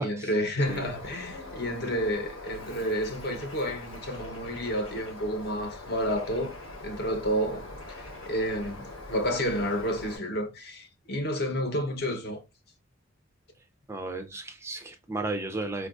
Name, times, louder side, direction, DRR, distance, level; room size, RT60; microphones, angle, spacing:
voice 1, 0.0-6.5 6.8-7.7 8.3-12.4, equal, 50° left, 0.8 m, -30 dB
Bird, 0.7-10.2, left 2 dB, 75° left, 1.0 m, -43 dB
voice 2, 13.9-15.9, right 2 dB, 15° right, 0.3 m, -34 dB
4.4 x 2.3 x 2.3 m
head